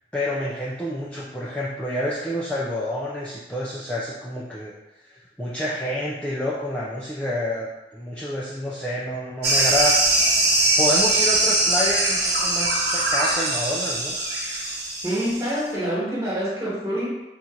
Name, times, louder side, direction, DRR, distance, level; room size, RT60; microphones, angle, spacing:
voice 1, 0.1-4.7 5.1-7.7 7.9-10.2 10.8-14.2, left 1 dB, 5° left, -7 dB, 0.4 m, -28 dB
sound 1, 9.4-15.6, right 2 dB, 70° right, 0.9 m, -21 dB
voice 2, 15.0-17.1, equal, 15° right, -7 dB, 1.2 m, -26 dB
4.1 x 2.5 x 4.4 m, 1.0 s
head